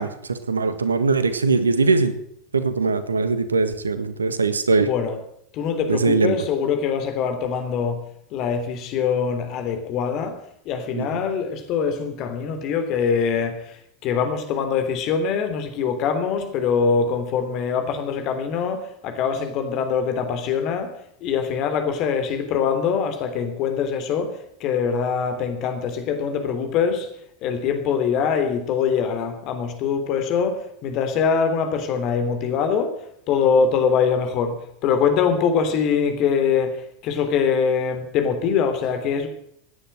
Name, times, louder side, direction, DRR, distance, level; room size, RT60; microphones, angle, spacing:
voice 1, 0.0-2.1 2.5-4.9 5.9-6.4 10.9-11.1, right 4 dB, 80° right, 12 dB, 1.5 m, -21 dB
voice 2, 4.8-5.2 5.5-8.0 8.3-20.9 21.2-27.1 27.4-32.9 33.3-39.3, left 6 dB, 40° left, 7 dB, 3.3 m, -23 dB
16.5 x 10.0 x 7.5 m, 0.74 s
figure-of-eight pair, 85°, 0 cm